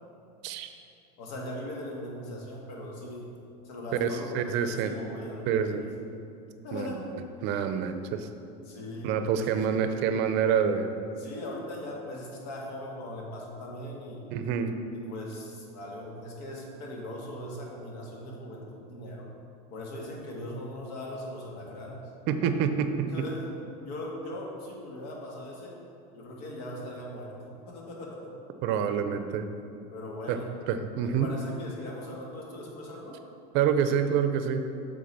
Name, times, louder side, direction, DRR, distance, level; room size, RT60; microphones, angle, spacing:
voice 1, 1.2-3.3 3.6-5.9 6.6-7.4 8.7-9.1 9.7-9.8 11.1-14.3 14.9-19.3 19.7-22.0 23.1-25.7 26.1-28.3 29.9-30.5 31.0-33.2, left 1 dB, 75° left, -2 dB, 1.7 m, -40 dB
voice 2, 4.0-4.9 5.5-5.8 6.7-8.3 9.0-10.9 14.3-14.7 22.3-23.3 28.6-29.5 30.3-30.4 30.7-31.3 33.5-34.7, right 7 dB, 60° right, 8 dB, 0.6 m, -27 dB
7.7 x 3.8 x 5.4 m, 2.6 s
supercardioid pair, 135°, 21 cm